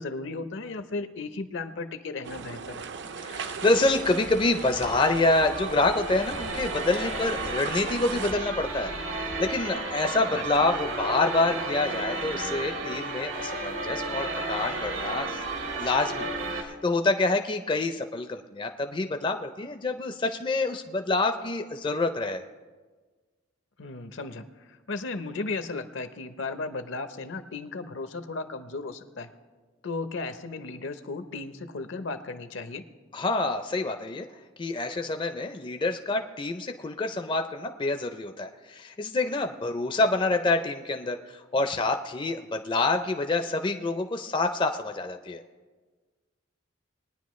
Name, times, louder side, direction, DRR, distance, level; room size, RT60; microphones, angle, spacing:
voice 1, 0.0-2.8 10.3-10.4 23.8-29.3 29.8-32.8, left 3 dB, 70° left, 10 dB, 0.7 m, -35 dB
sound 1, 2.2-8.3, right 5 dB, 60° right, 0.5 m, -38 dB
voice 2, 3.2-8.9 9.4-15.4 15.7-22.4 33.1-34.3 34.6-45.4, left 2 dB, 25° left, 7 dB, 0.4 m, -27 dB
sound 2, 3.5-16.6, right 2 dB, 85° right, 1.4 m, -33 dB
20.5 x 9.8 x 3.1 m, 1.4 s
head